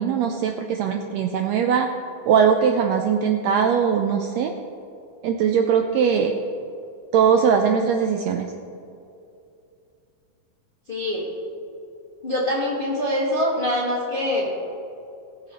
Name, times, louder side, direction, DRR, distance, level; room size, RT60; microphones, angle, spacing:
voice 1, 0.0-1.9 2.3-4.5 5.2-6.3 7.1-8.5, right 7 dB, 85° right, 5 dB, 1.6 m, -20 dB
voice 2, 10.9-11.2 12.2-14.5, left 1 dB, 30° left, -5 dB, 1.0 m, -24 dB
18.5 x 7.0 x 4.3 m, 2.5 s
omnidirectional pair, 3.6 m